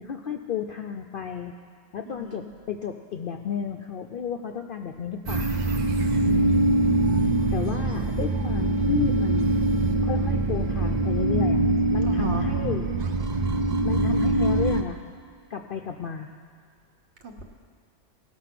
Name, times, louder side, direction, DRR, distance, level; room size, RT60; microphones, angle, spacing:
voice 1, 0.0-1.6 1.9-5.6 7.5-9.6 10.0-11.6 11.9-12.9 13.8-15.0 15.5-16.3, left 7 dB, 60° left, 4 dB, 0.5 m, -32 dB
voice 2, 2.1-2.5 6.1-6.6 12.0-12.5 17.2-17.4, right 1 dB, 60° right, 3 dB, 1.4 m, -38 dB
sound 1, 5.3-14.8, right 2 dB, 45° right, 0.6 m, -23 dB
18.5 x 6.1 x 5.9 m, 2.1 s
omnidirectional pair, 1.4 m